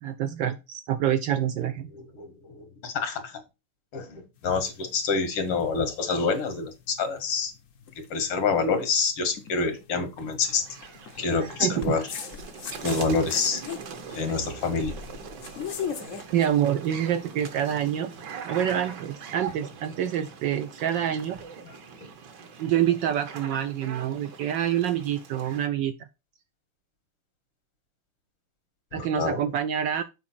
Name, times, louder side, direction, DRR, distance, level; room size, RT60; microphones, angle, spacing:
voice 1, 0.0-1.9 11.4-12.0 16.3-18.1 18.4-21.4 22.6-25.9 28.9-30.0, right 10 dB, 75° right, 10 dB, 1.0 m, -27 dB
voice 2, 1.9-3.3 3.9-7.5 8.1-10.6 11.2-12.0 12.8-13.6 14.1-14.9 22.0-22.1 28.9-29.4, left 4 dB, 85° left, 7 dB, 2.4 m, -27 dB
sound 1, 4.4-17.5, left 7 dB, 65° left, 0.8 m, -41 dB
sound 2, 10.4-25.7, right 6 dB, 60° right, 1.5 m, -42 dB
7.3 x 4.8 x 4.3 m, 0.27 s
omnidirectional pair, 2.4 m